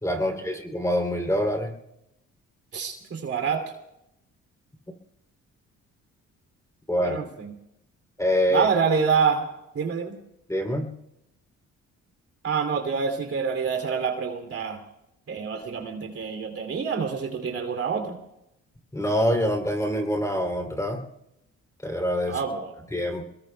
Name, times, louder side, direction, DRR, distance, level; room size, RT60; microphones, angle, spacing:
voice 1, 0.0-1.7 6.9-7.2 8.2-8.7 10.5-10.9 18.9-21.0 21.8-22.4 22.9-23.2, equal, 10° left, 3 dB, 3.1 m, -25 dB
voice 2, 2.7-3.6 7.0-7.5 8.5-9.5 9.7-10.2 12.4-14.8 15.3-18.2 22.3-22.7, right 6 dB, 50° right, 5 dB, 2.9 m, -27 dB
29.5 x 21.5 x 2.3 m, 0.86 s
cardioid pair, 90°, 30 cm